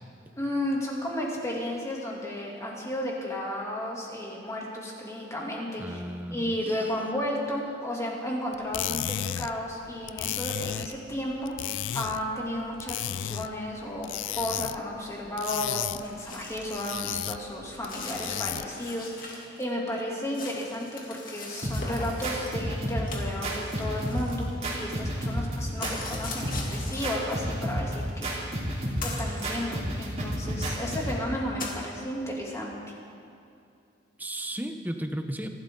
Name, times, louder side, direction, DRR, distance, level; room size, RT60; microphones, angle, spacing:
voice 1, 0.4-6.0 6.3-28.3 29.0-32.7, left 1 dB, 15° left, -3 dB, 2.8 m, -33 dB
voice 2, 5.8-6.9 34.2-35.5, right 1 dB, 10° right, 5 dB, 0.9 m, -35 dB
sound 1, 8.5-18.9, left 11 dB, 85° left, 0.4 m, -35 dB
sound 2, 15.5-16.7 17.0-17.1 17.8-19.6 19.9-22.5 23.1-24.8 25.8-27.3 28.2-28.3 29.0-29.5 30.3-30.4 30.7-30.8 31.6-31.8, left 3 dB, 50° left, 2.4 m, -41 dB
sound 3, 21.6-31.2, equal, 35° right, 3.2 m, -31 dB
26.0 x 12.5 x 3.9 m, 2.6 s
head